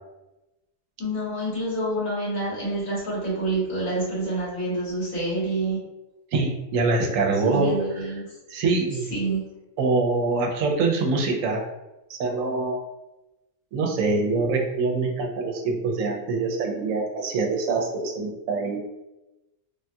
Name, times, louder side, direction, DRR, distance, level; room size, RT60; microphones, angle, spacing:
voice 1, 1.0-5.8 7.4-8.4 9.1-9.4, right 2 dB, 80° left, -7 dB, 1.8 m, -27 dB
voice 2, 6.3-7.8 8.5-9.1 9.8-11.6 12.1-12.8 13.7-18.8, right 3 dB, 80° right, 1 dB, 1.0 m, -24 dB
3.4 x 2.3 x 2.6 m, 0.99 s
omnidirectional pair, 1.4 m